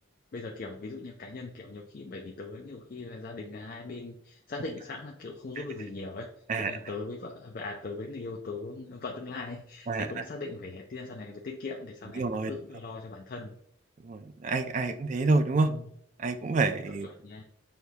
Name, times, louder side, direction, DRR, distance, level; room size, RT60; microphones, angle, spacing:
voice 1, 0.3-13.5 15.6-15.9 16.9-17.4, left 3 dB, 45° left, 1 dB, 0.4 m, -40 dB
voice 2, 12.2-12.5 14.0-15.7 16.2-17.1, right 3 dB, 40° right, 8 dB, 0.3 m, -27 dB
6.4 x 2.3 x 2.7 m, 0.67 s
head